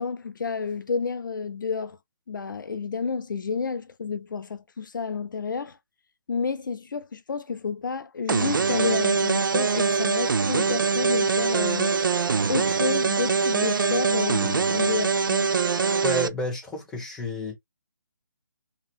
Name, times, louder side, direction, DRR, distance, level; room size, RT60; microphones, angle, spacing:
voice 1, 0.0-2.0 2.3-5.8 6.3-12.0 12.5-15.5, left 5 dB, 80° left, 0.5 m, -30 dB
sound 1, 8.3-16.3, right 5 dB, 85° right, 0.4 m, -23 dB
voice 2, 16.0-17.6, left 1 dB, 5° left, 1.1 m, -30 dB
2.9 x 2.8 x 2.4 m
hypercardioid pair, 155°, 11 cm